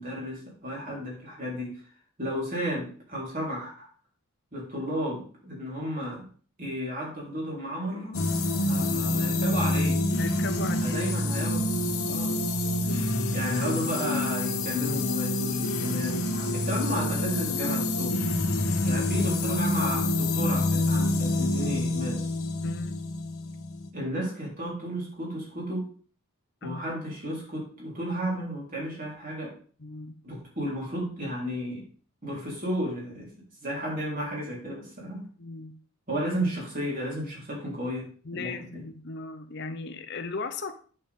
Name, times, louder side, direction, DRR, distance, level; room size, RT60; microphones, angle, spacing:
voice 1, 0.0-1.7 2.2-3.9 4.5-6.3 6.6-8.2 8.6-10.0 10.8-11.6 12.0-12.4 13.3-18.2 18.8-22.3 23.9-25.9 26.6-29.5 30.2-31.9 32.2-33.3 33.6-35.3 36.1-38.8, equal, 40° right, -4 dB, 4.1 m, -33 dB
sound 1, 8.1-23.9, left 2 dB, 80° left, 1.2 m, -27 dB
voice 2, 10.2-11.0 12.8-13.2 18.7-19.0 22.6-23.0 26.6-26.8 29.8-30.1 35.4-35.7 38.2-40.8, left 3 dB, 50° left, 9 dB, 0.7 m, -37 dB
8.8 x 7.2 x 3.7 m, 0.42 s
head